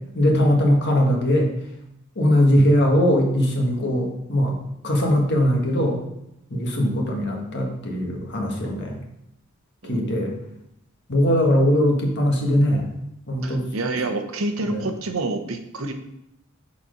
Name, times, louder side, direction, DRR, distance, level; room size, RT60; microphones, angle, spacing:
voice 1, 0.1-1.5 2.2-4.5 4.8-5.9 6.5-9.0 9.9-10.3 11.1-12.9 13.3-13.6 14.7-14.8, equal, 55° left, 1 dB, 1.5 m, -20 dB
voice 2, 9.8-10.5 13.4-15.9, right 2 dB, 70° right, 5 dB, 0.9 m, -28 dB
6.9 x 4.3 x 5.1 m, 0.84 s
head